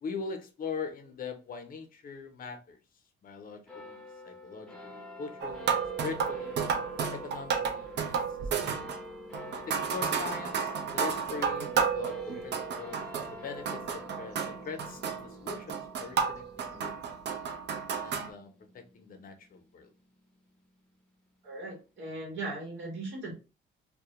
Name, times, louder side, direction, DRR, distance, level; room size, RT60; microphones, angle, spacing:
voice 1, 0.0-2.8 3.2-6.6 7.1-8.2 8.6-9.0 9.7-17.0 18.0-19.9, left 5 dB, 45° left, 0.6 m, -42 dB
sound 1, 3.7-20.4, left 1 dB, 5° left, 0.7 m, -47 dB
sound 2, 5.4-13.4 13.7-18.3, right 6 dB, 60° right, 0.5 m, -32 dB
voice 2, 21.4-23.3, right 2 dB, 80° right, 1.0 m, -38 dB
2.1 x 2.1 x 2.8 m
cardioid pair, 90°, 20 cm